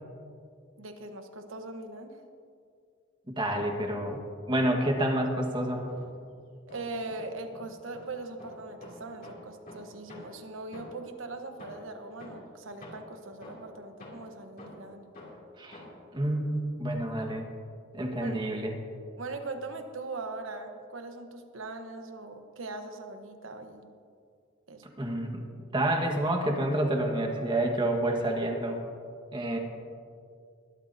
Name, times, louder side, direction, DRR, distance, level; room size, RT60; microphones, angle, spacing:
voice 1, 0.8-2.2 6.7-15.0 18.2-18.4 19.2-23.9 24.7-24.9, right 2 dB, 80° right, 6 dB, 1.1 m, -40 dB
voice 2, 3.3-4.2 4.5-5.9 15.6-15.8 16.1-17.4 17.9-18.7 24.8-25.4 25.7-28.8 29.3-29.6, right 1 dB, 25° right, 2 dB, 1.5 m, -28 dB
sound 1, 5.4-6.3 6.7-11.2 11.6-16.1, left 1 dB, 45° left, 2.8 m, -49 dB
21.5 x 12.5 x 2.8 m, 2.3 s
head